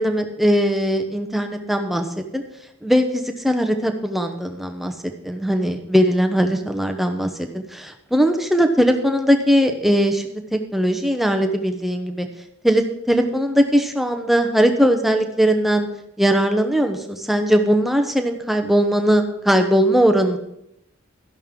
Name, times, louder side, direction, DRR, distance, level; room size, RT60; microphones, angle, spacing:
voice 1, 0.0-2.1 2.3-2.4 2.8-4.9 5.2-12.3 12.6-15.9 16.2-20.4, equal, ahead, 5 dB, 0.8 m, -19 dB
12.5 x 10.5 x 3.7 m, 0.82 s
head